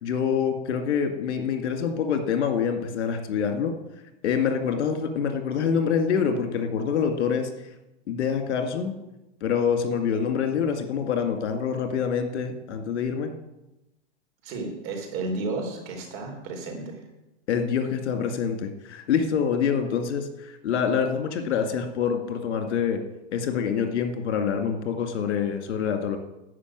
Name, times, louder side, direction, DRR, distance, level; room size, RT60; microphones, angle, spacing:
voice 1, 0.0-3.8 4.2-7.5 8.1-9.0 9.4-13.3 17.5-23.0 23.3-26.2, left 7 dB, 70° left, 6 dB, 2.2 m, -26 dB
voice 2, 14.4-17.0, right 3 dB, 40° right, 2 dB, 4.1 m, -32 dB
12.5 x 5.6 x 8.9 m, 0.94 s
hypercardioid pair, 135°, 36 cm